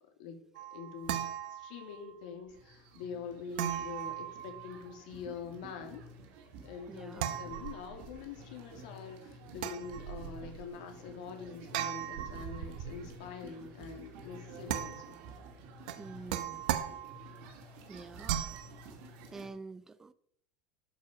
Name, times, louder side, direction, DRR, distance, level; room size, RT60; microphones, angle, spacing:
sound 1, 0.5-2.1 3.6-5.0 7.2-8.2 9.6-10.6 11.7-13.1 14.7-15.3 15.9-17.4 18.2-18.7, right 11 dB, 85° right, 1.0 m, -38 dB
voice 1, 0.7-1.2 1.5-6.0 6.6-15.2, left 6 dB, 80° left, 2.1 m, -45 dB
sound 2, 2.5-19.5, right 2 dB, 55° right, 2.3 m, -51 dB
voice 2, 6.9-7.3 16.0-16.6 17.9-18.4 19.3-20.1, right 3 dB, 10° right, 0.4 m, -47 dB
12.0 x 5.4 x 5.1 m
cardioid pair, 175°, 4 cm